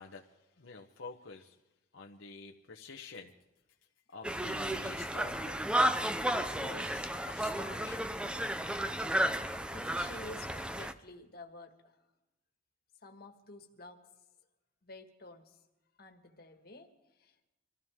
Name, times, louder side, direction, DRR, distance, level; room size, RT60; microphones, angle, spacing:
voice 1, 0.0-1.6 1.9-3.3 4.1-5.6 6.3-8.1, left 4 dB, 80° left, 1 dB, 1.0 m, -48 dB
Conversation, 4.2-10.9, right 1 dB, 5° right, 0.5 m, -33 dB
voice 2, 9.7-12.0 13.0-14.1 14.8-15.6 16.0-17.5, left 2 dB, 50° left, 4 dB, 1.8 m, -51 dB
25.5 x 15.5 x 3.7 m, 0.99 s
head